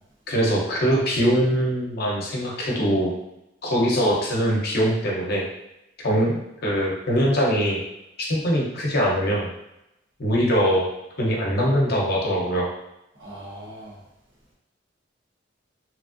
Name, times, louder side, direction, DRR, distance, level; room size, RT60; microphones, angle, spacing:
voice 1, 0.3-3.1 3.6-5.5 6.0-7.8 8.3-9.5 10.2-10.8 11.2-12.7, equal, 55° left, -3 dB, 0.8 m, -22 dB
voice 2, 13.2-14.0, right 1 dB, 90° right, -6 dB, 1.1 m, -40 dB
3.0 x 2.5 x 2.5 m, 0.87 s
head